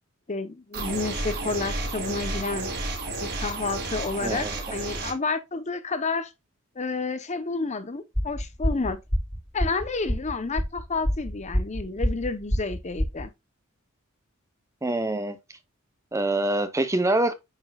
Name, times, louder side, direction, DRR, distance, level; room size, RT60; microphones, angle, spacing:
voice 1, 0.3-2.7 3.2-6.3 6.8-9.0 9.5-13.3, left 3 dB, 30° left, 0.8 m, -30 dB
sound 1, 0.7-5.1, right 2 dB, 50° right, 4.2 m, -31 dB
voice 2, 4.2-4.6 14.8-15.4 16.1-17.3, right 2 dB, 15° right, 0.7 m, -25 dB
sound 2, 8.1-13.3, equal, 10° left, 2.2 m, -27 dB
8.9 x 6.1 x 2.3 m
head